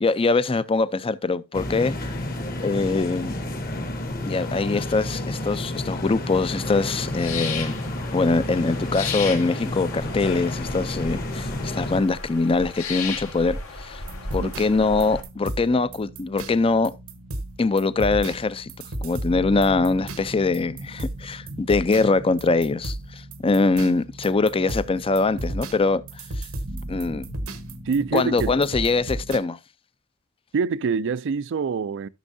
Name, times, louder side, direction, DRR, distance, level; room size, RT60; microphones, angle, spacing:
voice 1, 0.0-2.1 2.6-3.3 4.3-7.8 8.1-14.0 14.3-16.9 17.6-18.7 19.0-26.0 26.4-26.5 26.9-27.3 28.1-29.6, left 3 dB, 25° left, 0.4 m, -23 dB
sound 1, 1.5-12.0, left 1 dB, 45° left, 1.4 m, -30 dB
sound 2, 6.5-15.2, left 4 dB, 75° left, 1.9 m, -35 dB
sound 3, 14.1-29.4, right 1 dB, 90° right, 1.2 m, -35 dB
voice 2, 27.9-28.5 30.5-32.1, right 5 dB, 60° right, 0.4 m, -25 dB
13.5 x 6.3 x 2.6 m
head